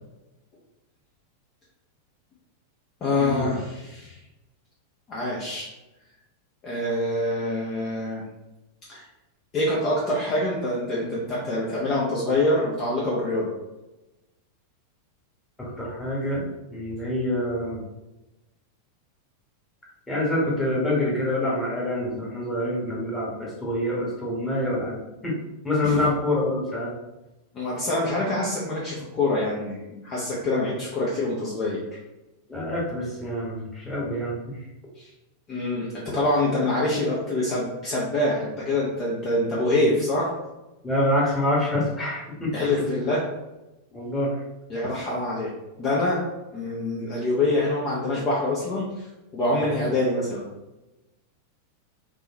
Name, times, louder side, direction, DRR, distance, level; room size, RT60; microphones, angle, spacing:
voice 1, 3.0-4.2 5.1-5.7 6.6-8.2 8.9-9.0 9.5-13.5 25.8-26.0 27.5-32.0 35.0-35.1 35.5-40.3 42.5-43.3 44.7-45.5 45.8-46.2 46.5-49.1 49.3-50.5, left 2 dB, 30° left, -5 dB, 0.9 m, -25 dB
voice 2, 15.6-17.8 20.1-25.3 25.6-26.9 32.5-34.6 40.8-42.5 43.9-44.4 49.6-49.9, left 1 dB, 10° left, -5 dB, 1.5 m, -26 dB
3.6 x 3.3 x 2.9 m, 1.0 s
figure-of-eight pair, 90°, 0 cm